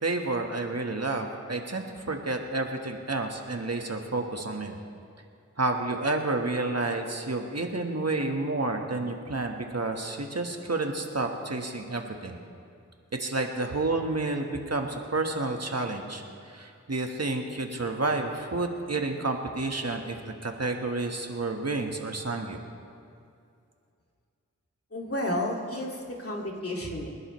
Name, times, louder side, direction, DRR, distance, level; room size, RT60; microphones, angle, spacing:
voice 1, 0.0-4.8 5.6-12.4 13.2-22.6, right 2 dB, 55° right, 3 dB, 1.4 m, -30 dB
voice 2, 24.9-27.1, left 1 dB, 50° left, -1 dB, 2.3 m, -31 dB
27.5 x 11.5 x 3.2 m, 2.4 s
wide cardioid pair, 45°, 31 cm